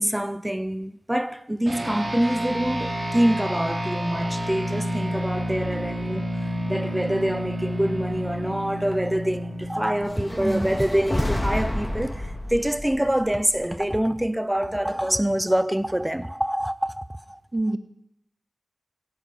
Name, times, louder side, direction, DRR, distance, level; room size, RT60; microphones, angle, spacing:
voice 1, 0.0-17.4, right 1 dB, 10° right, 0.7 m, -25 dB
sound 1, 1.7-11.4, equal, 70° right, 4.2 m, -30 dB
sound 2, 10.0-14.3, left 1 dB, 25° left, 2.8 m, -30 dB
voice 2, 10.3-10.8 17.5-17.8, right 1 dB, 35° right, 1.3 m, -26 dB
16.0 x 9.1 x 6.1 m
cardioid pair, 40°, 0 cm